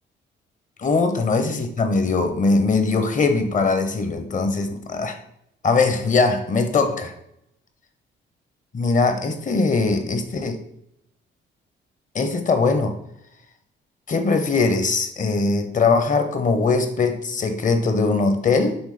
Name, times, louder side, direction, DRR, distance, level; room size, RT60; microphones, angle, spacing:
voice 1, 0.8-5.2 5.6-7.1 8.7-10.6 12.1-13.0 14.1-18.8, left 4 dB, 40° left, 7 dB, 1.1 m, -21 dB
6.3 x 3.6 x 5.1 m, 0.76 s
cardioid pair, 90°, 20 cm